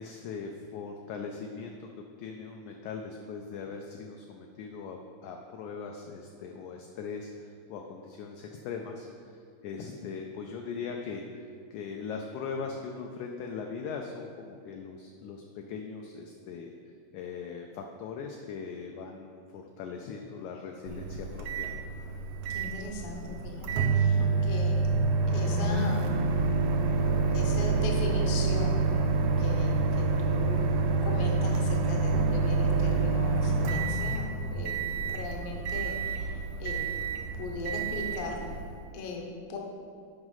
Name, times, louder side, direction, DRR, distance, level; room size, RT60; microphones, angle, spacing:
voice 1, 0.0-1.9 2.2-11.5 11.7-16.7 17.1-21.8, left 5 dB, 80° left, 2 dB, 1.8 m, -40 dB
Microwave oven, 20.9-38.8, right 4 dB, 80° right, 1.6 m, -27 dB
voice 2, 22.5-24.9 25.3-26.1 27.3-28.9 29.4-36.8 37.4-38.5 38.9-39.6, left 2 dB, 65° left, 0 dB, 1.5 m, -38 dB
8.0 x 5.0 x 5.6 m, 2.3 s
omnidirectional pair, 3.9 m